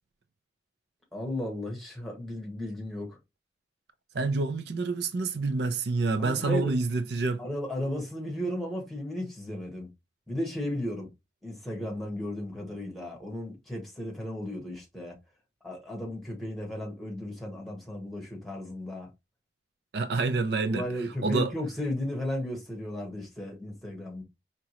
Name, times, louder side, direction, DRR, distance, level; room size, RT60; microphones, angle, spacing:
voice 1, 1.1-3.2 6.2-6.7 7.4-9.9 10.3-11.1 11.4-15.2 15.6-19.1 20.6-24.2, left 1 dB, ahead, 1.4 m, -35 dB
voice 2, 4.1-7.4 19.9-20.9 21.2-21.5, right 3 dB, 65° right, 0.5 m, -27 dB
4.8 x 2.9 x 3.0 m
head